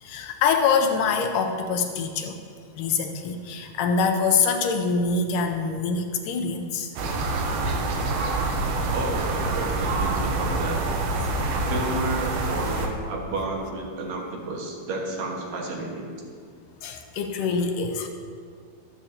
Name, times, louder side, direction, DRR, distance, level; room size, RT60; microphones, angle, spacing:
voice 1, 0.0-2.4 2.8-6.9 7.6-7.8 16.8-18.1, left 5 dB, 80° left, 5 dB, 2.0 m, -24 dB
sound 1, 7.0-12.9, right 2 dB, 80° right, 2.8 m, -26 dB
voice 2, 8.9-10.8 11.5-16.1, right 2 dB, 55° right, -1 dB, 2.4 m, -31 dB
13.0 x 13.0 x 2.8 m, 2.1 s
omnidirectional pair, 4.3 m